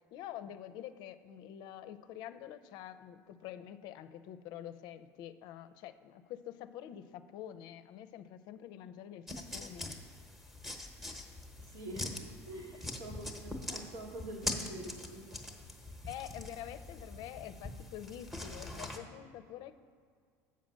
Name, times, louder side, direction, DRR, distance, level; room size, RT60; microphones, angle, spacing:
voice 1, 0.0-10.0 16.1-19.7, left 11 dB, 65° left, 11 dB, 0.5 m, -47 dB
sound 1, 9.3-19.0, left 2 dB, ahead, 1.0 m, -43 dB
voice 2, 11.6-15.3, right 1 dB, 75° right, 0 dB, 1.7 m, -46 dB
7.4 x 5.6 x 6.2 m, 2.1 s
supercardioid pair, 110°, 8 cm